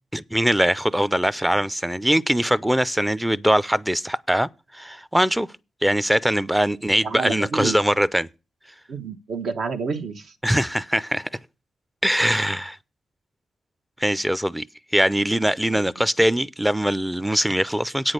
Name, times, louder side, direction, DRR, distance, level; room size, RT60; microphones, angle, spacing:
voice 1, 0.1-5.5 5.8-8.3 10.4-11.3 12.0-12.8 14.0-14.7 14.9-18.1, equal, 5° right, 0.5 m, -22 dB
voice 2, 7.0-7.8 8.9-10.3 15.7-15.8, right 5 dB, 70° right, 1.2 m, -29 dB
8.9 x 6.1 x 6.6 m
cardioid pair, 85°, 0 cm